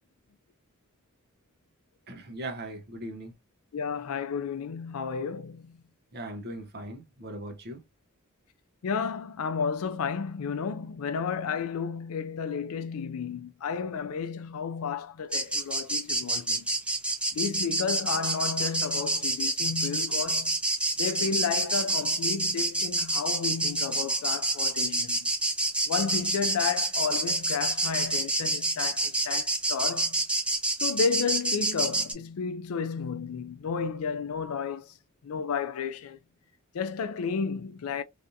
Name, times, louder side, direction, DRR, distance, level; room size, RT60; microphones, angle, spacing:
voice 1, 2.1-3.3 6.1-7.8, right 1 dB, 50° right, 0.8 m, -39 dB
voice 2, 3.7-5.8 8.8-16.7 17.3-20.6 21.0-25.3 25.9-30.2 30.8-34.9 35.2-36.2 36.7-38.0, left 6 dB, 80° left, 0.4 m, -32 dB
sound 1, 15.3-32.1, right 2 dB, 5° right, 0.5 m, -28 dB
3.3 x 2.6 x 2.7 m
head